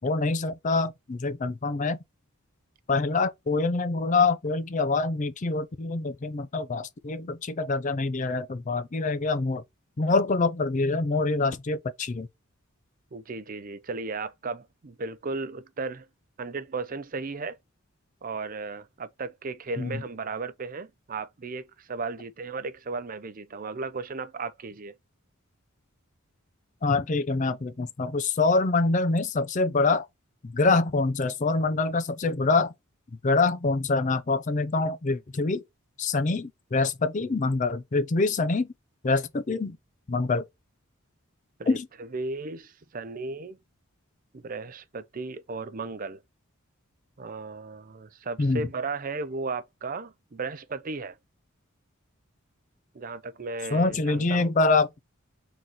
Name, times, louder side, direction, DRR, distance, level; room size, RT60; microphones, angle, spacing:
voice 1, 0.0-2.0 2.9-9.6 10.0-12.3 19.8-20.0 26.8-30.1 30.4-32.7 33.2-35.6 36.0-38.7 39.0-39.8 40.1-40.5 41.7-41.9 48.4-48.6 53.7-54.9, left 3 dB, 35° left, 0.5 m, -25 dB
voice 2, 13.1-16.1 16.4-17.6 18.2-24.9 41.6-43.6 44.3-46.2 47.2-51.2 52.9-54.5, right 3 dB, 40° right, 0.5 m, -35 dB
3.9 x 3.0 x 4.0 m
head